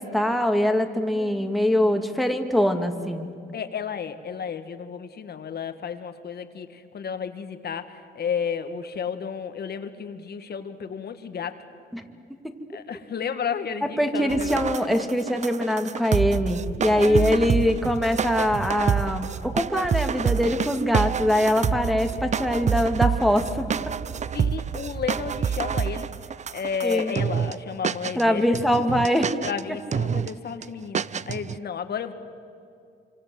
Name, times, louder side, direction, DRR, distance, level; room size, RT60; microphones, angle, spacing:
voice 1, 0.0-3.3 11.9-12.0 14.0-23.7 26.8-27.1 28.2-29.4, left 1 dB, ahead, 5 dB, 2.4 m, -23 dB
voice 2, 1.1-2.0 3.5-11.6 12.7-14.6 16.9-17.6 24.3-26.1 26.5-28.7 29.4-32.1, left 7 dB, 55° left, 9 dB, 2.0 m, -32 dB
sound 1, 14.3-27.5 27.8-28.2 28.5-29.6 29.9-30.3 30.6-30.7 30.9-31.6, right 7 dB, 35° right, 0.6 m, -27 dB
27.0 x 26.0 x 7.9 m, 2.4 s
cardioid pair, 90°, 20 cm